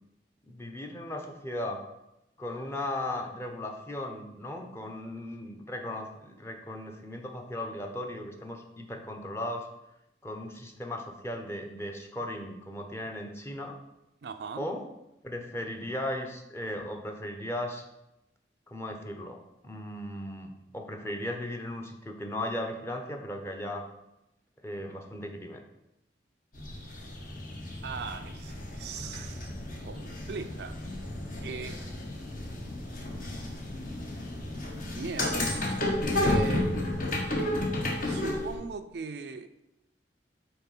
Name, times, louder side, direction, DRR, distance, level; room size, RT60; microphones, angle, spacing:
voice 1, 0.4-1.8 2.4-9.7 10.2-13.7 14.6-14.8 15.2-17.8 18.7-23.8 24.6-25.6, left 1 dB, 15° left, 3 dB, 0.8 m, -37 dB
voice 2, 14.2-14.7 27.8-29.5 29.8-30.8 31.4-31.8 34.9-35.5 36.1-36.7 38.0-39.5, right 5 dB, 65° right, 8 dB, 0.4 m, -39 dB
sound 1, 26.5-38.6, left 1 dB, 50° left, 1.3 m, -32 dB
5.8 x 4.1 x 5.5 m, 0.87 s
head